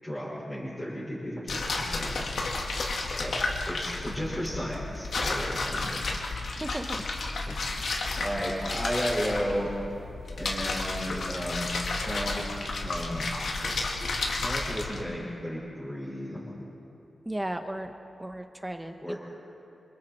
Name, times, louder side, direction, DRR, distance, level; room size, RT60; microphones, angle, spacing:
voice 1, 0.0-2.5 3.2-3.4 3.7-6.0 7.5-7.6 7.9-9.7 10.4-13.9 14.4-16.6 19.0-19.2, equal, 10° left, -10 dB, 5.7 m, -34 dB
sound 1, 1.5-15.0, left 3 dB, 65° left, 2.3 m, -32 dB
voice 2, 6.6-7.0 17.2-17.9 18.2-19.2, right 1 dB, 10° right, 5 dB, 1.2 m, -35 dB
28.0 x 28.0 x 4.5 m, 2.7 s
wide cardioid pair, 175°, 0 cm